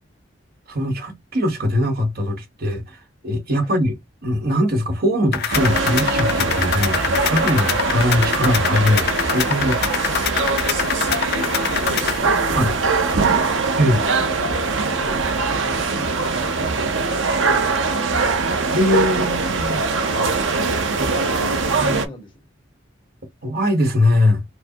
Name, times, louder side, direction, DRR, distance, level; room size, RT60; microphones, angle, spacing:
voice 1, 0.7-3.9 4.2-10.2 12.5-12.7 13.8-14.0 18.7-19.9 23.4-24.4, left 1 dB, 55° right, 1.1 m, -21 dB
sound 1, 5.3-12.2, left 7 dB, 55° left, 0.7 m, -25 dB
sound 2, 5.5-22.1, right 4 dB, 85° right, 0.8 m, -22 dB
voice 2, 11.0-18.5 20.8-22.4, equal, 25° left, 1.4 m, -38 dB
4.6 x 2.1 x 2.8 m
head